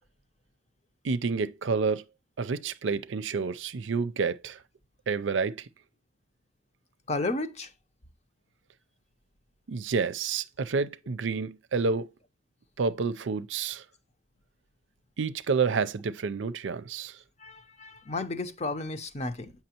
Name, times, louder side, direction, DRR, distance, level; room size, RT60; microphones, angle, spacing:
voice 1, 1.0-2.0 2.4-4.6 5.1-5.7 9.7-12.1 12.8-13.8 15.2-17.2, right 5 dB, 90° right, 0.5 m, -29 dB
voice 2, 7.1-7.7 17.4-19.5, left 2 dB, 35° left, 0.7 m, -33 dB
7.7 x 5.8 x 2.9 m
head